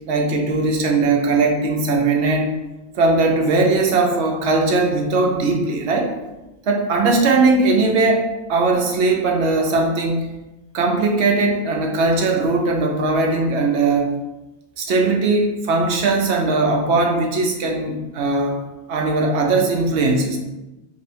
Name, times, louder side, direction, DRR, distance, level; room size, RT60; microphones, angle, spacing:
voice 1, 0.1-2.5 2.9-6.1 6.6-10.3 10.7-14.1 14.8-18.6 18.9-20.4, right 3 dB, 75° right, 2 dB, 0.9 m, -19 dB
3.0 x 2.3 x 4.1 m, 1.0 s
omnidirectional pair, 1.2 m